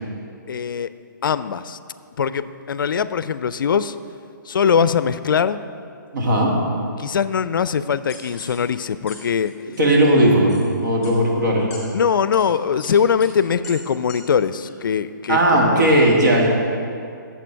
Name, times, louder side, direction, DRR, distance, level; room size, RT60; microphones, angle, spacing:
voice 1, 0.5-0.9 1.2-1.8 2.2-4.0 4.5-5.6 7.0-9.5 11.9-15.9, left 7 dB, 80° left, 14 dB, 0.4 m, -21 dB
voice 2, 6.1-6.5 9.8-11.7 15.3-16.5, right 1 dB, 60° right, -2 dB, 1.9 m, -16 dB
sound 1, 8.1-8.6 9.1-9.2 9.5-9.8 10.5-10.6 11.0-11.1 11.7-11.8 12.3-12.4 12.8-12.9 13.2-13.3 13.6-13.7 14.1-14.2 14.7-14.8, left 5 dB, 10° left, 1.6 m, -39 dB
8.5 x 7.2 x 4.5 m, 2.4 s
hypercardioid pair, 160°, 11 cm